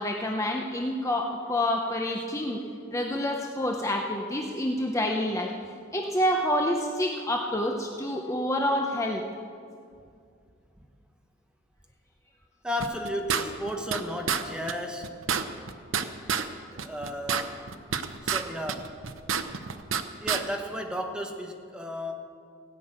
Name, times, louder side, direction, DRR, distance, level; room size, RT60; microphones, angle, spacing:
voice 1, 0.0-2.6 2.9-5.5 5.9-9.2, left 1 dB, 15° left, 1 dB, 0.7 m, -28 dB
voice 2, 12.6-15.2 16.7-17.6 18.2-19.0 20.2-22.1, equal, 5° right, 3 dB, 1.1 m, -34 dB
sound 1, 12.8-14.0 14.3-14.4 14.7-14.8 15.0-16.5 16.8-18.4 18.7-20.0 20.3-20.4, right 7 dB, 70° right, 0.7 m, -28 dB
17.0 x 6.2 x 8.9 m, 2.3 s
head